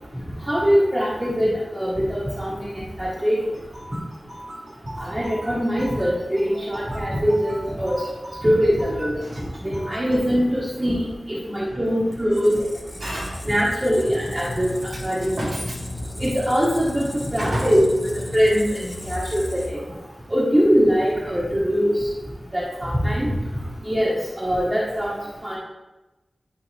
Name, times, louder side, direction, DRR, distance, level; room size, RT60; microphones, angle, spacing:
voice 1, 0.4-2.5 2.7-3.4 5.0-8.0 8.4-12.5 13.5-14.7 15.0-15.3 16.2-17.8 18.1-19.8 20.3-22.1 22.5-23.3 23.8-25.6, equal, 25° right, -8 dB, 1.6 m, -22 dB
voice 2, 3.7-10.2 13.0-13.5 14.9-15.0 15.4-15.8 17.4-17.8, right 1 dB, 80° right, -6 dB, 2.3 m, -35 dB
Squeak, 12.1-20.0, left 1 dB, 30° left, 1.0 m, -35 dB
10.5 x 3.7 x 3.5 m, 1.1 s
wide cardioid pair, 65°, 0 cm